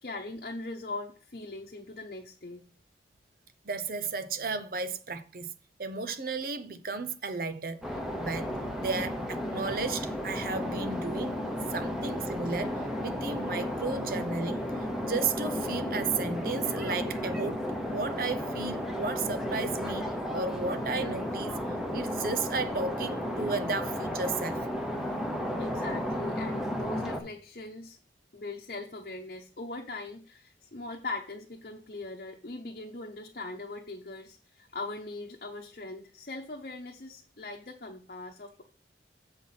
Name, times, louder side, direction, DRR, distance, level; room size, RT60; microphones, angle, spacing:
voice 1, 0.0-2.6 25.1-25.2 25.6-28.0 28.3-38.6, left 2 dB, 50° left, 0.9 m, -40 dB
voice 2, 3.7-5.5 5.8-7.8 8.2-8.5 8.8-11.3 11.7-17.6 17.9-20.0 20.3-21.6 21.9-24.7, right 4 dB, 50° right, 0.7 m, -34 dB
sound 1, 7.8-27.2, equal, ahead, 1.0 m, -33 dB
7.8 x 4.4 x 5.8 m
head